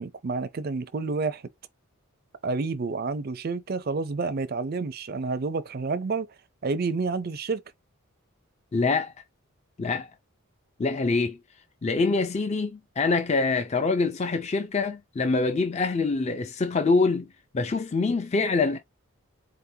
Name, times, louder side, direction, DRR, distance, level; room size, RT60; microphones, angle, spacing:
voice 1, 0.0-1.4 2.4-6.3 6.6-7.6, right 4 dB, 45° right, 0.4 m, -29 dB
voice 2, 8.7-9.1 9.8-10.1 10.8-11.4 11.8-17.3 17.5-18.8, left 3 dB, 30° left, 0.4 m, -25 dB
4.1 x 3.6 x 2.7 m
head